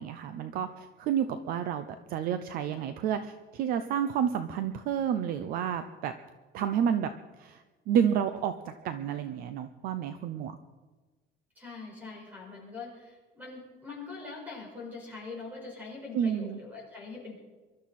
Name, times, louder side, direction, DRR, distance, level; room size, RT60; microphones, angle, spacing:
voice 1, 0.0-1.8 2.1-6.1 6.5-7.1 7.4-10.6 16.1-16.6, right 8 dB, 45° right, 10 dB, 0.7 m, -30 dB
voice 2, 11.5-17.4, left 4 dB, 10° right, -1 dB, 5.0 m, -43 dB
23.0 x 12.5 x 4.3 m, 1.3 s
cardioid pair, 175°, 21 cm